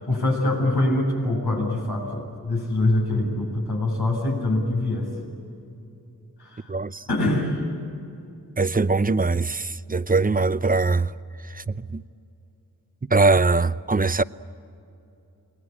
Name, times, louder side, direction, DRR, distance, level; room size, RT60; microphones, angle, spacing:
voice 1, 0.0-5.1 6.4-6.7 7.1-7.6, left 2 dB, 85° left, 7.7 m, -24 dB
voice 2, 6.7-7.0 8.6-11.1 11.5-12.0 13.1-14.2, right 3 dB, 20° right, 0.7 m, -22 dB
29.0 x 21.0 x 8.8 m
wide cardioid pair, 60°, 38 cm